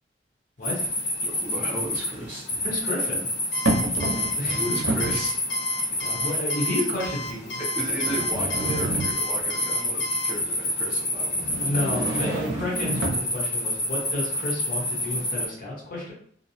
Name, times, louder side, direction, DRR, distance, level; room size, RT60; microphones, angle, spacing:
sound 1, 0.6-15.4, left 1 dB, 90° left, 1.2 m, -28 dB
voice 1, 0.6-0.9 2.6-3.3 4.4-4.6 6.0-7.6 11.6-16.1, left 1 dB, 50° left, -3 dB, 0.9 m, -31 dB
sound 2, 0.7-0.8 2.1-2.8 3.7-4.5 4.7-5.3 6.1-6.2 7.0-7.1 8.1-9.5 11.4-13.3, right 1 dB, 70° right, 0.5 m, -29 dB
voice 2, 1.2-2.5 4.5-5.3 6.2-6.3 7.6-11.5, right 1 dB, 10° right, -11 dB, 0.5 m, -34 dB
Alarm, 3.5-10.3, left 2 dB, 65° left, 0.4 m, -34 dB
2.6 x 2.0 x 2.7 m, 0.62 s
head